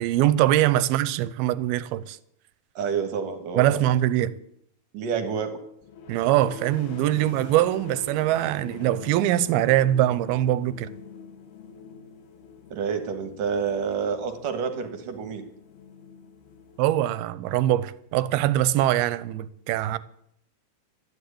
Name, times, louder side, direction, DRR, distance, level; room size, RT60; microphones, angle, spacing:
voice 1, 0.0-2.2 3.6-4.3 6.1-10.9 16.8-20.0, right 13 dB, 85° right, 2.6 m, -23 dB
voice 2, 2.8-3.8 4.2-4.3 4.9-5.6 12.7-15.4, right 6 dB, 65° right, 2.8 m, -28 dB
sound 1, 5.8-17.4, left 5 dB, 85° left, 3.4 m, -44 dB
13.0 x 11.0 x 8.6 m
omnidirectional pair, 4.4 m